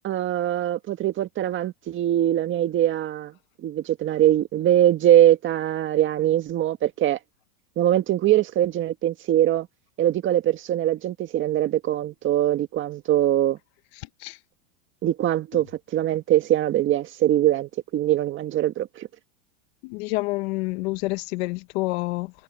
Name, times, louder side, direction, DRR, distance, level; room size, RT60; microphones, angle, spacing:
voice 1, 0.0-3.3 3.6-7.2 7.8-9.7 10.0-13.6 15.0-15.7 15.9-19.1, right 12 dB, 25° right, 1.7 m, -22 dB
voice 2, 13.9-14.4 15.5-15.7 19.8-22.3, left 23 dB, 45° left, 0.8 m, -28 dB
supercardioid pair, 145°, 44 cm